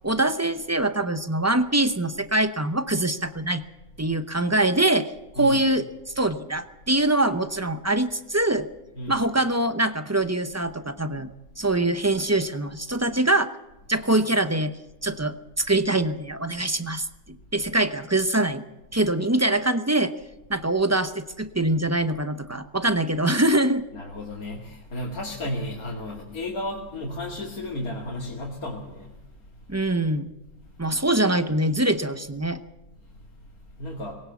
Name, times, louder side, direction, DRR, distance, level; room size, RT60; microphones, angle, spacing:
voice 1, 0.0-3.6 4.0-5.9 6.2-8.7 9.1-11.3 11.6-13.5 13.9-14.7 15.0-17.1 17.5-18.6 18.9-20.1 20.5-23.8 29.7-30.3 30.8-32.6, right 2 dB, 15° right, 11 dB, 0.6 m, -23 dB
voice 2, 23.9-29.1 33.8-34.1, left 1 dB, 85° left, -2 dB, 2.8 m, -33 dB
20.5 x 17.5 x 7.1 m, 1.0 s
omnidirectional pair, 1.5 m